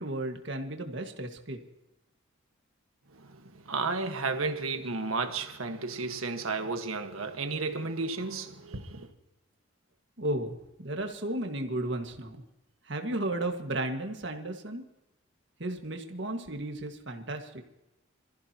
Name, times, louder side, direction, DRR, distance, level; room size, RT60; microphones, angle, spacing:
voice 1, 0.0-1.6 10.2-12.4 12.9-14.8 15.6-17.6, right 1 dB, 55° right, 1.8 m, -34 dB
voice 2, 3.1-9.1, right 3 dB, 85° right, 1.6 m, -33 dB
26.5 x 15.0 x 3.0 m
head